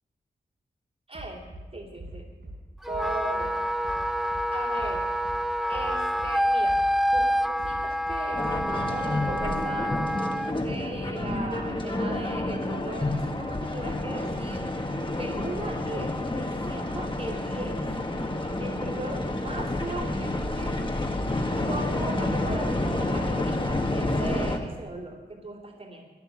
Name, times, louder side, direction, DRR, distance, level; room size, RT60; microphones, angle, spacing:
voice 1, 1.1-2.3 2.9-3.6 4.5-5.2 5.7-6.8 7.1-14.7 15.1-17.8 18.6-20.9 21.6-26.1, right 2 dB, 45° right, -6 dB, 2.9 m, -38 dB
Bass drum, 1.1-1.6 2.0-2.6 2.9-3.5 3.8-4.4 4.8-5.4 5.7-6.3 6.6-7.3 7.6-8.2 8.5-8.6, right 1 dB, 85° right, 5.3 m, -41 dB
Wind instrument woodwind instrument, 2.8-10.5, equal, ahead, 0.5 m, -27 dB
sound 1, 8.3-24.6, left 1 dB, 30° left, 1.6 m, -29 dB
12.5 x 10.5 x 7.7 m, 1.3 s
cardioid pair, 45°, 18 cm